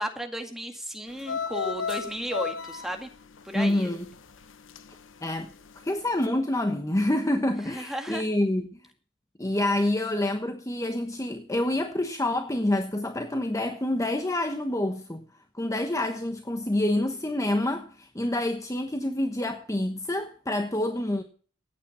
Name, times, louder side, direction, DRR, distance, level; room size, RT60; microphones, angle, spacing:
voice 1, 0.0-3.1 3.4-3.9 7.7-8.2, right 1 dB, ahead, 2.0 m, -34 dB
sound 1, 1.1-5.0 5.3-5.8 6.2-6.3, left 6 dB, 75° left, 0.9 m, -34 dB
voice 2, 3.5-4.0 5.2-5.5 5.8-8.8 9.4-15.2 15.6-21.2, left 1 dB, 15° left, 1.1 m, -27 dB
15.0 x 9.3 x 5.6 m
head